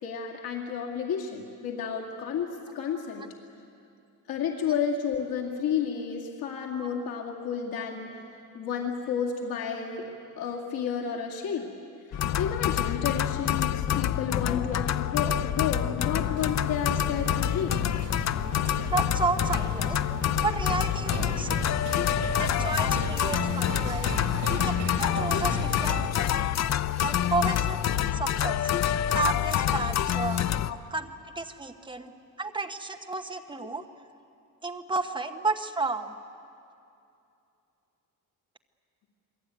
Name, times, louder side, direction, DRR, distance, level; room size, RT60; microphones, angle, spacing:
voice 1, 0.0-2.5 2.7-3.3 4.3-8.2 8.5-10.1 10.4-11.7 12.1-17.7 24.3-24.5 30.6-30.8, left 7 dB, 90° left, 0 dB, 2.5 m, -31 dB
sound 1, 12.1-30.7, left 11 dB, 50° left, 0.6 m, -27 dB
sound 2, 16.3-26.1, right 5 dB, 55° right, 3.2 m, -37 dB
voice 2, 18.8-20.0 20.4-21.6 22.4-24.1 24.5-24.7 25.0-26.3 26.9-28.7 29.1-30.4 30.9-31.1 31.3-32.1 32.4-33.8 34.6-36.1, right 3 dB, 15° right, 5 dB, 1.1 m, -32 dB
28.0 x 22.0 x 9.2 m, 2.6 s
cardioid pair, 170°, 35 cm